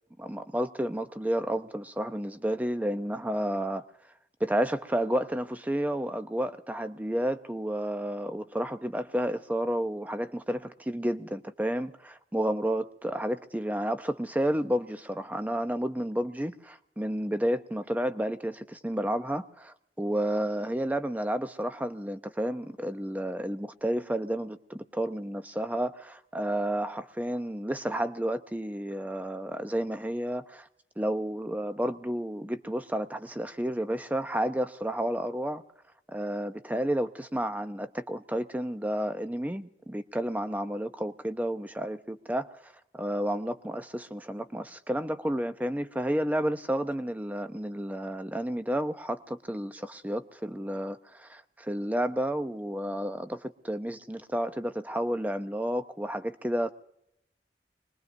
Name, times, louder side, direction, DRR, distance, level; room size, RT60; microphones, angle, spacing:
voice 1, 0.2-3.9 4.4-30.7 31.0-35.6 36.1-56.7, right 1 dB, 10° right, 10 dB, 0.6 m, -31 dB
25.5 x 21.0 x 2.6 m, 0.79 s
head